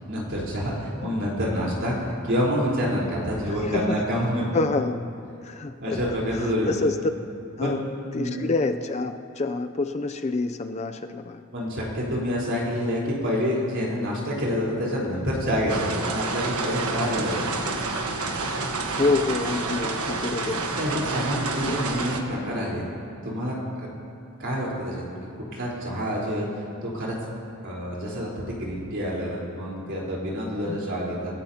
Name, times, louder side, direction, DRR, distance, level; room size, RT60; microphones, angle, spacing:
voice 1, 0.1-4.5 5.8-6.7 7.6-7.9 8.1-8.4 11.5-17.4 20.8-22.8 23.2-23.9 24.4-27.1 27.6-31.4, equal, 55° right, -5 dB, 4.0 m, -27 dB
voice 2, 4.5-5.0 5.4-5.7 6.7-7.0 7.6-7.8 8.1-11.4 19.0-20.6 21.7-21.8 30.7-30.8, left 3 dB, 30° left, 8 dB, 0.4 m, -27 dB
sound 1, 15.7-22.2, right 3 dB, 80° right, 1.2 m, -29 dB
27.0 x 13.0 x 2.9 m, 2.6 s
head